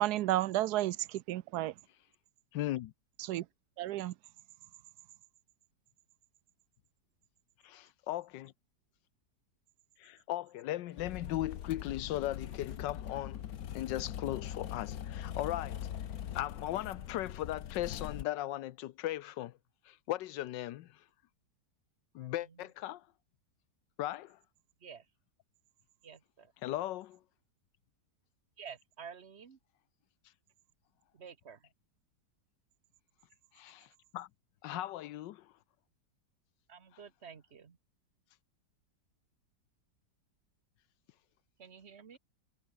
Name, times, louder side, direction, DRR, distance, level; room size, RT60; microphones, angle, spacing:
voice 1, 0.0-1.7 3.3-3.4 3.8-4.1, right 15 dB, 70° right, 1.1 m, -32 dB
voice 2, 2.5-2.9 7.6-8.5 10.0-13.4 13.7-15.9 16.3-19.5 19.9-21.0 22.1-23.0 24.0-24.4 26.6-27.2 33.5-33.9 34.1-34.3 34.6-35.5, left 14 dB, 90° left, 1.4 m, -37 dB
sound 1, 10.9-17.4, left 3 dB, 40° left, 3.0 m, -62 dB
sound 2, 11.0-18.2, left 10 dB, 60° left, 1.3 m, -42 dB
voice 3, 22.2-22.7 24.8-25.1 26.0-26.5 28.6-29.6 31.1-31.7 36.7-37.8 41.6-42.2, right 6 dB, 40° right, 1.5 m, -51 dB
omnidirectional pair, 1.9 m